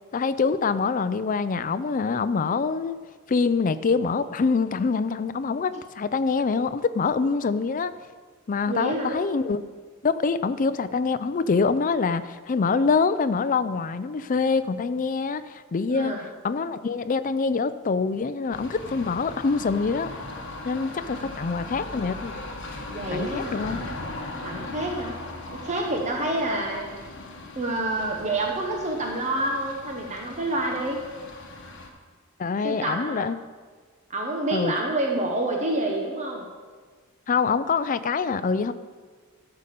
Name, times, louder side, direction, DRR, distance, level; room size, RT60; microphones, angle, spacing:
voice 1, 0.1-3.0 3.3-7.9 8.5-9.6 10.0-16.1 16.4-20.1 20.6-22.3 23.1-23.8 32.4-33.4 34.5-34.7 37.3-38.7, left 4 dB, 40° left, 12 dB, 0.4 m, -25 dB
voice 2, 8.7-9.2 15.9-16.2 21.1-21.4 22.9-23.9 24.4-25.1 25.6-26.9 27.6-31.0 32.6-33.2 34.1-36.4, right 2 dB, 35° right, 1 dB, 1.0 m, -28 dB
sound 1, 18.5-31.9, left 2 dB, 60° left, 1.4 m, -38 dB
12.5 x 5.2 x 6.8 m, 1.5 s
head